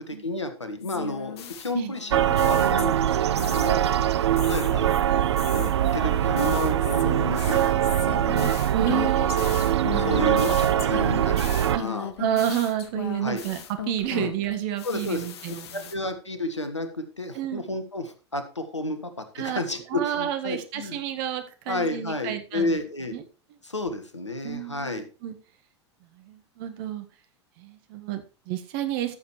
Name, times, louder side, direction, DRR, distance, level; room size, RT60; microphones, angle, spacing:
voice 1, 0.0-3.8 4.3-4.9 5.5-8.3 8.9-9.7 10.0-11.4 11.7-12.1 13.2-13.4 14.1-14.3 14.8-15.3 15.7-21.0 21.7-23.2 23.6-25.0, left 2 dB, 90° left, 8 dB, 1.5 m, -31 dB
sound 1, 0.8-3.1 3.4-3.9 4.4-14.5 14.8-15.9, left 9 dB, 65° left, 1.2 m, -37 dB
sound 2, 2.1-11.8, right 10 dB, 70° right, 0.5 m, -23 dB
voice 2, 8.7-9.4 9.7-10.0 11.7-11.8 12.2-13.6 13.9-15.8 17.3-17.7 19.3-19.6 19.9-22.8 23.1-23.2 24.4-25.3 26.2-27.0 27.6-29.1, right 11 dB, 50° right, 9 dB, 1.6 m, -30 dB
14.0 x 7.3 x 3.2 m, 0.34 s
figure-of-eight pair, 85°, 15 cm